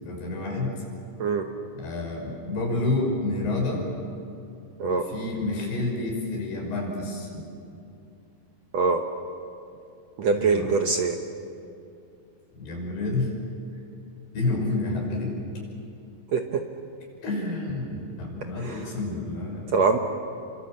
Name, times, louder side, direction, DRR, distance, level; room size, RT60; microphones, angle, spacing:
voice 1, 0.0-0.7 1.8-3.8 4.8-7.4 10.3-10.7 12.6-13.3 14.3-15.4 17.2-19.6, left 2 dB, 80° left, -1 dB, 7.8 m, -29 dB
voice 2, 10.2-11.2 16.3-16.6 18.6-18.9 19.7-20.0, right 4 dB, 75° right, 4 dB, 1.6 m, -23 dB
29.5 x 24.5 x 7.6 m, 2.5 s
omnidirectional pair, 4.6 m